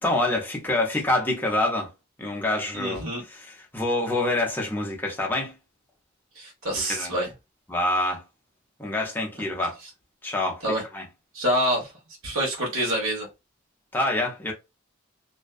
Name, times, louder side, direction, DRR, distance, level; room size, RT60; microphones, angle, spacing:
voice 1, 0.0-1.9 2.2-5.5 6.9-7.1 7.7-8.2 8.8-9.8 10.2-10.6 10.9-11.0 13.9-14.5, left 2 dB, 10° left, 0.6 m, -26 dB
voice 2, 2.7-3.2 6.3-7.3 10.6-10.8 11.3-11.9 12.2-13.3, equal, 70° right, 1.1 m, -26 dB
2.6 x 2.2 x 2.3 m
head